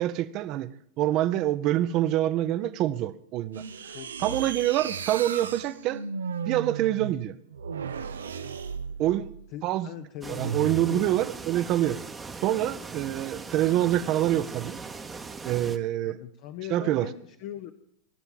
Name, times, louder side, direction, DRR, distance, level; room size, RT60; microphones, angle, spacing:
voice 1, 0.0-3.6 4.2-6.0 6.5-7.3 9.0-9.3 9.6-9.9 10.3-12.0 12.4-14.8 15.4-16.2 16.7-17.1, right 13 dB, 45° right, 0.8 m, -26 dB
sound 1, 3.5-9.5 10.4-11.0, right 6 dB, 85° right, 0.8 m, -35 dB
voice 2, 3.9-4.5 9.5-11.3 16.2-17.7, left 11 dB, 55° left, 0.9 m, -40 dB
sound 2, 10.2-15.8, right 4 dB, 15° right, 1.0 m, -40 dB
18.0 x 7.1 x 7.5 m
hypercardioid pair, 100°, 0 cm